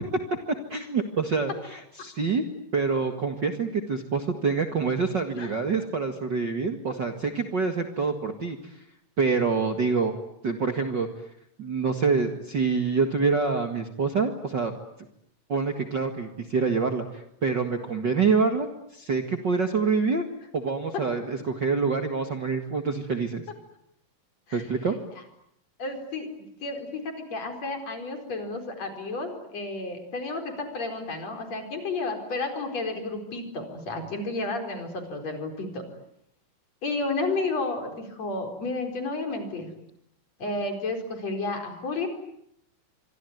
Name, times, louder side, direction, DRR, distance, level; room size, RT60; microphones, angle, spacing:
voice 1, 0.5-2.4 2.7-8.8 9.2-10.1 10.4-11.1 11.6-14.7 15.5-20.2 20.5-23.4 24.5-25.0, right 4 dB, 40° right, 5 dB, 2.0 m, -26 dB
voice 2, 25.8-26.3 26.6-35.9 36.8-39.7 40.4-42.1, left 3 dB, 50° left, 5 dB, 5.5 m, -32 dB
26.0 x 24.5 x 9.3 m, 0.75 s
omnidirectional pair, 3.8 m